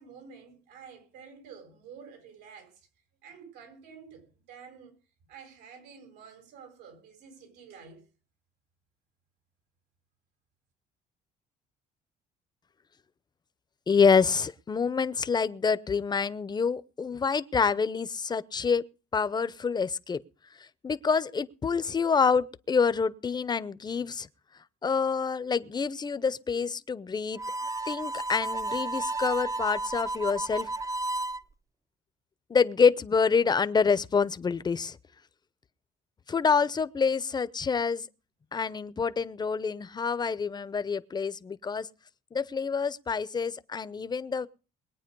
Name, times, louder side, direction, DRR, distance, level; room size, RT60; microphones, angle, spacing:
voice 1, 0.0-2.9 3.2-4.9 5.3-8.0, right 6 dB, 90° right, 7.3 m, -50 dB
voice 2, 13.9-18.8 19.1-20.2 20.8-24.3 24.8-27.4 27.9-30.7 32.5-35.0 36.3-38.1 38.5-41.9 42.3-44.5, left 5 dB, 25° left, 0.8 m, -27 dB
Harmonica, 27.3-31.4, right 2 dB, 20° right, 0.7 m, -32 dB
21.5 x 9.2 x 5.3 m
cardioid pair, 110°, 17 cm